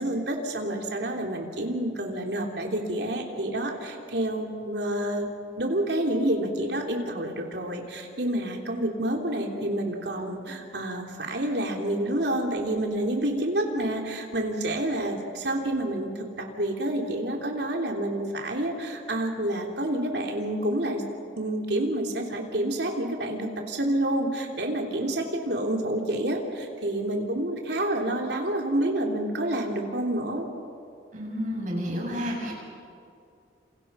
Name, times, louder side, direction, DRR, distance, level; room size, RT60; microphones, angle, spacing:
voice 1, 0.0-5.3 5.6-21.0 21.4-30.5, right 1 dB, 65° right, 2 dB, 3.3 m, -28 dB
voice 2, 31.1-32.5, equal, 40° right, -2 dB, 7.5 m, -30 dB
28.0 x 28.0 x 5.6 m, 2.5 s
head